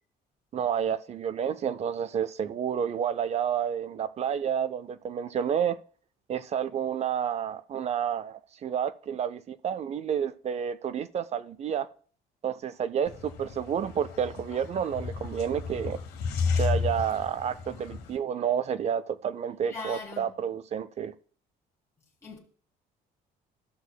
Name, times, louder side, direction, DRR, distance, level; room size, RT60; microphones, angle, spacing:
voice 1, 0.5-5.8 6.3-11.9 12.4-16.0 16.5-21.1, right 8 dB, 40° right, 0.5 m, -30 dB
sound 1, 13.0-18.2, left 5 dB, 75° left, 1.2 m, -32 dB
voice 2, 19.7-20.3 22.2-22.4, left 3 dB, 15° left, 1.6 m, -39 dB
13.5 x 6.3 x 2.2 m
cardioid pair, 110°, 17 cm